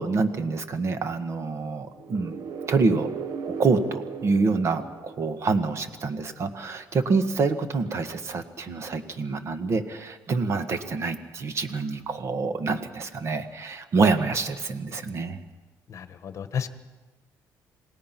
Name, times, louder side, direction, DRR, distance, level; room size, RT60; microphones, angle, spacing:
voice 1, 0.0-2.4 2.7-3.1 3.4-15.4, right 4 dB, 40° right, 10 dB, 1.5 m, -26 dB
sound 1, 2.0-5.8, right 6 dB, 60° right, 1.2 m, -36 dB
voice 2, 15.9-16.7, left 7 dB, 45° left, 11 dB, 1.3 m, -32 dB
27.5 x 18.5 x 6.0 m, 1.3 s
cardioid pair, 140°, 7 cm